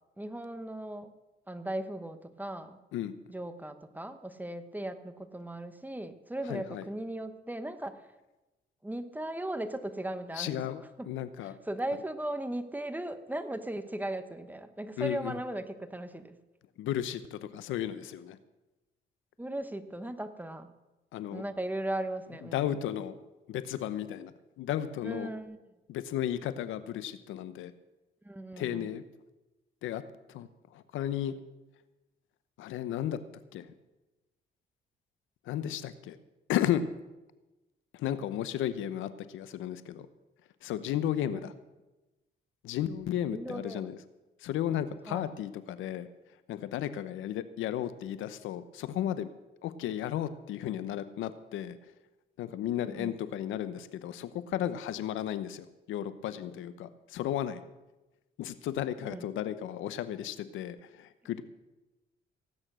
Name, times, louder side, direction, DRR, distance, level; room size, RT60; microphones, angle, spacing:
voice 1, 0.2-1.1 1.5-2.8 3.3-8.1 8.8-10.6 11.0-11.1 11.7-16.4 19.4-20.7 21.3-22.7 25.0-25.6 28.2-28.9 43.3-43.9 45.1-45.3 52.8-53.1 59.0-59.3, right 1 dB, 10° right, 10 dB, 1.1 m, -37 dB
voice 2, 6.5-6.9 10.4-11.6 15.0-15.4 16.8-18.4 21.1-21.4 22.5-23.2 23.5-25.3 25.9-27.7 28.6-29.0 29.8-30.0 30.3-31.3 32.6-33.2 33.5-33.7 35.5-36.2 36.5-36.8 37.9-40.1 40.6-41.5 42.6-44.0 44.4-46.1 46.5-49.3 49.6-51.9 52.4-57.6 58.4-61.4, left 11 dB, 85° left, 13 dB, 0.8 m, -34 dB
17.0 x 9.0 x 6.2 m, 1.1 s
cardioid pair, 90°, 20 cm